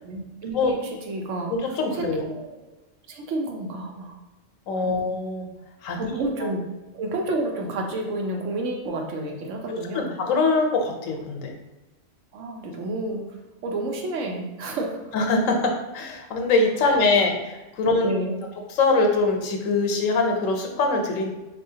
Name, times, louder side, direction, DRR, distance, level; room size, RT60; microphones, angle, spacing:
voice 1, 0.0-1.5 1.9-2.6 3.1-4.2 4.8-5.0 6.0-6.6 6.9-10.1 12.3-13.3 13.6-15.1 16.8-17.0 17.9-18.4, right 2 dB, 75° right, 2 dB, 1.0 m, -30 dB
voice 2, 1.5-2.3 4.7-5.5 5.8-6.1 9.7-11.5 15.1-18.2 18.7-21.3, left 3 dB, 85° left, 3 dB, 1.0 m, -23 dB
4.3 x 2.7 x 2.7 m, 1.1 s
omnidirectional pair, 1.3 m